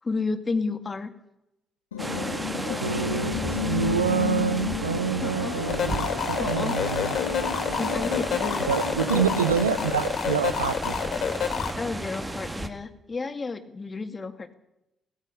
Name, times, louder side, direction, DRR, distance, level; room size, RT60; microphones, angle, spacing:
voice 1, 0.0-1.1 2.5-2.8 5.2-5.5 6.4-6.7 7.8-8.7 9.1-9.3 11.8-14.5, left 4 dB, 35° left, 9 dB, 2.4 m, -31 dB
sound 1, 1.9-9.9, left 8 dB, 85° left, 1.4 m, -33 dB
sound 2, 2.0-12.7, right 1 dB, 15° right, 2.5 m, -33 dB
voice 2, 2.8-7.2 8.7-11.0, right 7 dB, 90° right, 15 dB, 0.7 m, -27 dB
sound 3, 5.7-11.7, left 7 dB, 55° left, 2.9 m, -29 dB
17.0 x 15.5 x 9.9 m, 0.87 s
hypercardioid pair, 45°, 0 cm